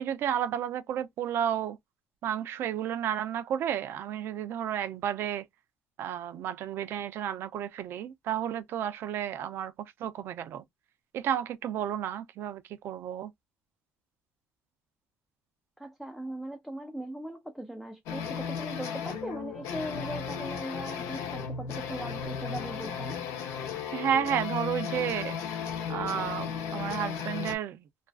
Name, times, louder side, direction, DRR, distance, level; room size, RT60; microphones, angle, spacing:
voice 1, 0.0-1.8 2.2-5.5 6.0-10.6 11.1-13.3 23.9-25.4 25.9-27.8, right 9 dB, 60° right, 0.4 m, -32 dB
voice 2, 15.8-23.2, right 1 dB, ahead, 0.4 m, -39 dB
sound 1, 18.1-27.6, left 7 dB, 85° left, 0.7 m, -35 dB
2.4 x 2.3 x 2.3 m
cardioid pair, 130°, 4 cm